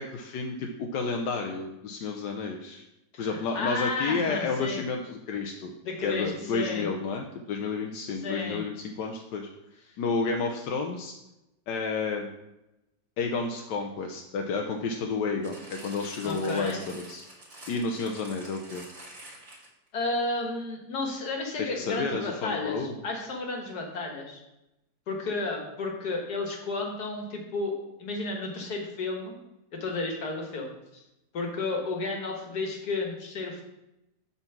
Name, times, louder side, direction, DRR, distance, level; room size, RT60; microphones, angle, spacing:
voice 1, 0.0-2.8 3.2-5.7 6.0-9.5 10.0-11.1 11.7-12.3 13.2-17.2 17.7-18.8 21.6-23.0, left 4 dB, 90° left, 2 dB, 1.4 m, -31 dB
voice 2, 3.1-4.8 5.8-6.9 8.2-8.6 16.2-16.8 19.9-24.4 25.1-29.3 29.7-31.0 31.3-33.6, left 3 dB, 70° left, 2 dB, 2.0 m, -32 dB
sound 1, 15.4-19.9 20.6-20.7, right 1 dB, 60° right, 2.8 m, -47 dB
8.1 x 4.2 x 5.9 m, 0.90 s
omnidirectional pair, 1.8 m